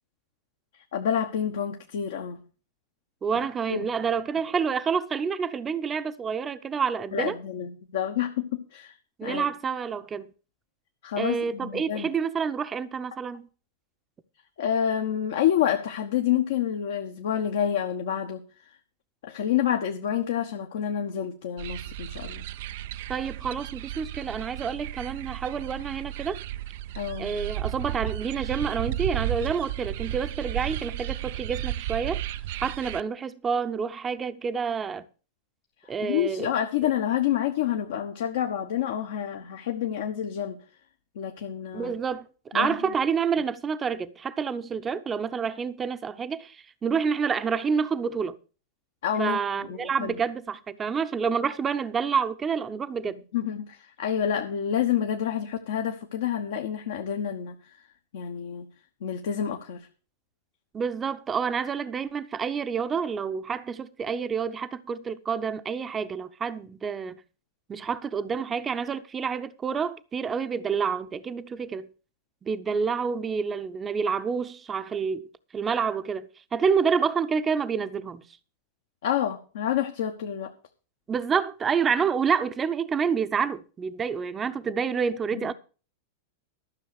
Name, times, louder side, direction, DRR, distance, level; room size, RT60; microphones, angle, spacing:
voice 1, 0.9-2.4 3.7-3.8 7.1-8.9 9.2-9.5 11.0-12.1 14.6-18.4 19.2-22.4 26.9-27.3 36.0-40.6 41.1-41.9 42.5-42.8 49.0-49.4 49.7-50.2 53.3-57.5 58.1-58.6 59.0-59.8 79.0-80.5, left 9 dB, 60° left, 1.1 m, -28 dB
voice 2, 3.2-7.4 9.2-10.3 11.2-13.5 23.1-26.4 27.2-32.2 32.6-35.0 35.9-36.5 41.7-42.3 42.5-48.4 49.2-53.2 60.7-67.2 67.7-71.9 72.4-75.3 75.5-78.2 81.1-85.5, right 6 dB, 20° right, 0.8 m, -28 dB
sound 1, 21.6-33.0, right 13 dB, 55° right, 0.5 m, -34 dB
13.5 x 6.6 x 6.5 m
figure-of-eight pair, 90°, 0 cm